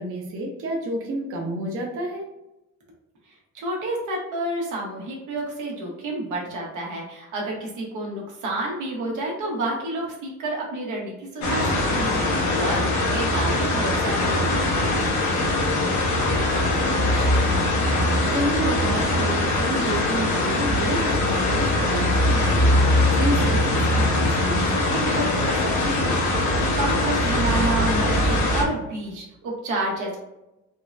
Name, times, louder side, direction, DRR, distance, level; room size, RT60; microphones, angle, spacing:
voice 1, 0.0-2.2 16.9-26.1, right 1 dB, 45° right, -1 dB, 0.7 m, -30 dB
voice 2, 3.5-15.0 26.8-30.2, right 2 dB, 85° right, -2 dB, 1.0 m, -29 dB
sound 1, 11.4-28.6, left 1 dB, 70° left, 0.9 m, -22 dB
3.6 x 2.1 x 2.4 m, 0.95 s
cardioid pair, 90°, 30 cm